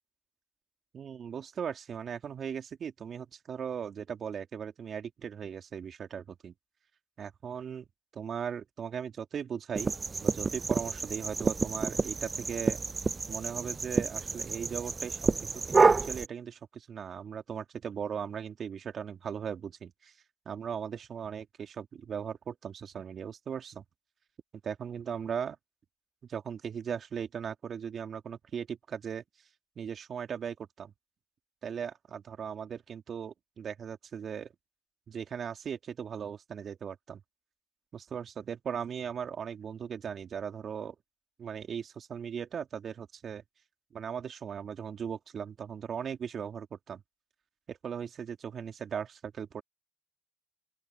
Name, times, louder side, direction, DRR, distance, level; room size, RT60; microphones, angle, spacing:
voice 1, 0.9-6.5 7.2-7.9 8.1-10.0 10.2-12.8 13.3-20.1 20.5-23.8 24.6-25.6 26.3-29.2 29.8-30.9 31.6-34.5 35.1-37.2 37.9-40.9 41.4-43.4 43.9-47.0 47.7-49.6, right 7 dB, 60° right, 2.6 m, -38 dB
sound 1, 9.7-16.3, right 4 dB, 35° right, 0.3 m, -29 dB
open air
supercardioid pair, 50°, 0 cm